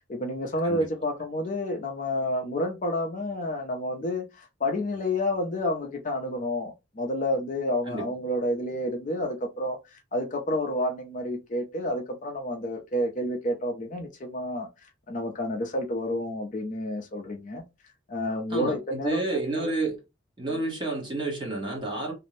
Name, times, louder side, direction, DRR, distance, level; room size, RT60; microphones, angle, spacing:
voice 1, 0.1-14.7 15.1-17.6 18.1-19.7 20.5-20.6, left 1 dB, 40° left, 0.5 m, -30 dB
voice 2, 18.5-20.0 20.4-22.1, right 2 dB, 25° right, 0.9 m, -30 dB
2.5 x 2.0 x 3.0 m
head